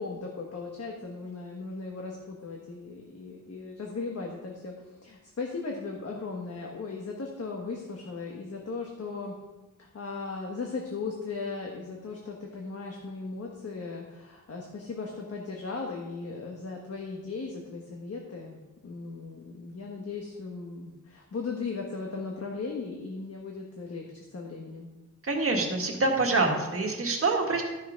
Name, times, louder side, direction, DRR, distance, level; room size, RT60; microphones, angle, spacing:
voice 1, 0.0-4.7 5.0-9.4 9.8-24.9, left 4 dB, 50° left, 0 dB, 1.2 m, -37 dB
voice 2, 25.2-27.6, right 3 dB, 45° right, 1 dB, 1.7 m, -26 dB
13.0 x 6.1 x 5.1 m, 1.1 s
wide cardioid pair, 165°, 32 cm